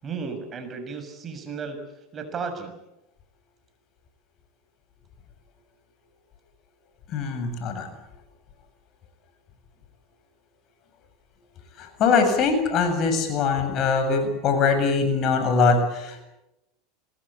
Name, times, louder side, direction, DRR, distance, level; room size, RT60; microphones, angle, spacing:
voice 1, 0.0-1.8 2.1-2.7, right 5 dB, 35° right, 7 dB, 6.5 m, -34 dB
voice 2, 7.1-7.9 11.8-16.2, left 4 dB, 50° left, 7 dB, 7.6 m, -22 dB
25.0 x 20.5 x 8.7 m, 0.92 s
hypercardioid pair, 100°, 0 cm